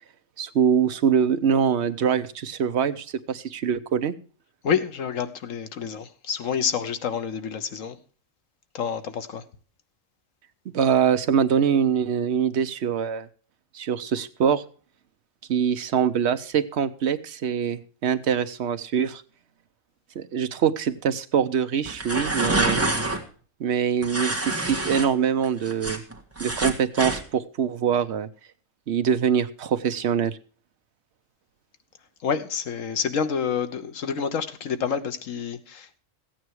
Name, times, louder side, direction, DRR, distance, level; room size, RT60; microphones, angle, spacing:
voice 1, 0.4-4.1 10.7-13.3 13.7-14.6 15.5-19.2 20.2-22.8 23.6-26.0 26.4-28.3 28.9-30.4, right 7 dB, 60° right, 1.0 m, -24 dB
voice 2, 4.6-8.0 8.7-9.4 32.2-36.0, left 7 dB, 85° left, 1.3 m, -28 dB
sound 1, 21.8-23.2 24.0-25.1 25.4-27.2, right 2 dB, 10° right, 1.6 m, -26 dB
14.5 x 9.0 x 4.6 m
omnidirectional pair, 1.3 m